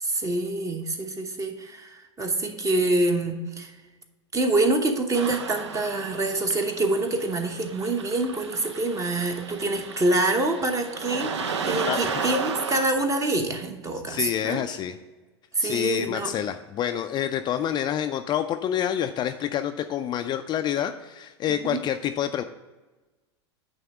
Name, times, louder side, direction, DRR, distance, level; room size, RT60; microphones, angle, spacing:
voice 1, 0.0-3.7 4.3-11.3 11.6-14.6 15.5-16.3 21.5-21.8, right 2 dB, 20° right, 6 dB, 1.0 m, -26 dB
sound 1, 5.1-12.9, right 6 dB, 75° right, 0.6 m, -34 dB
voice 2, 14.1-15.0 15.6-22.4, left 10 dB, 30° left, 8 dB, 0.4 m, -27 dB
9.1 x 3.5 x 5.9 m, 1.2 s
figure-of-eight pair, 90°, 15 cm